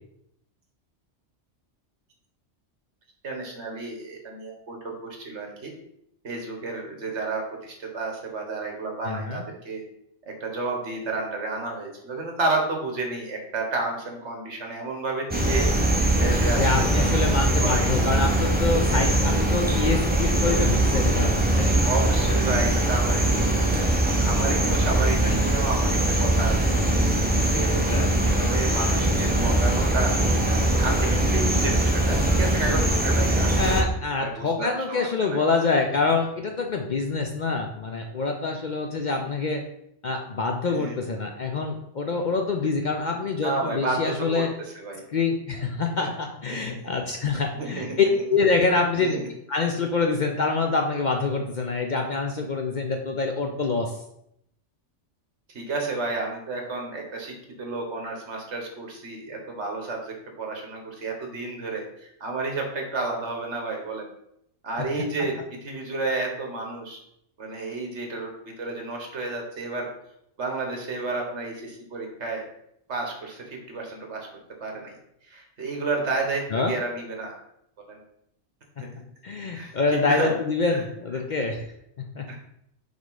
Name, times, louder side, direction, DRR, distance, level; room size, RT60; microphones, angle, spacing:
voice 1, 3.2-5.7 6.2-9.8 10.3-15.7 16.2-17.4 17.6-17.9 21.8-26.8 27.3-33.5 34.2-35.4 40.7-41.0 43.4-44.5 44.7-45.0 46.0-46.1 46.5-47.0 47.5-48.0 49.0-49.2 55.5-64.1 64.6-65.4 65.6-67.0 67.4-69.9 70.4-72.4 72.9-74.3 74.6-74.9 75.3-77.4 77.9-78.0 78.8-78.9 79.5-80.4 80.7-80.8 81.3-81.5 82.3-82.4, right 3 dB, 70° right, 2 dB, 1.6 m, -31 dB
voice 2, 9.0-9.4 16.6-21.7 26.6-26.8 27.6-28.1 33.6-39.6 40.0-44.5 45.1-49.2 49.5-54.0 65.2-65.3 76.5-76.8 78.8-78.9 79.2-81.7 82.0-82.3, left 4 dB, 50° left, 3 dB, 0.6 m, -26 dB
sound 1, 15.3-33.8, right 1 dB, 10° right, 0.8 m, -22 dB
5.3 x 4.9 x 4.0 m, 0.76 s
omnidirectional pair, 1.2 m